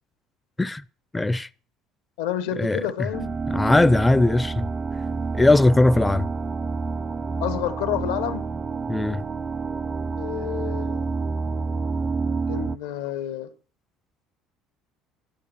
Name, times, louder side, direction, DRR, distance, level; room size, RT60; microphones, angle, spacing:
voice 1, 1.1-1.5 2.6-3.1 3.5-4.6 5.3-6.3 8.9-9.2, left 2 dB, 15° left, 0.6 m, -19 dB
voice 2, 2.2-3.4 7.4-8.4 10.2-11.1 12.2-13.5, left 11 dB, 85° left, 1.6 m, -29 dB
sound 1, 3.1-12.8, right 4 dB, 30° right, 0.6 m, -28 dB
13.0 x 10.5 x 6.9 m
supercardioid pair, 80°, 0 cm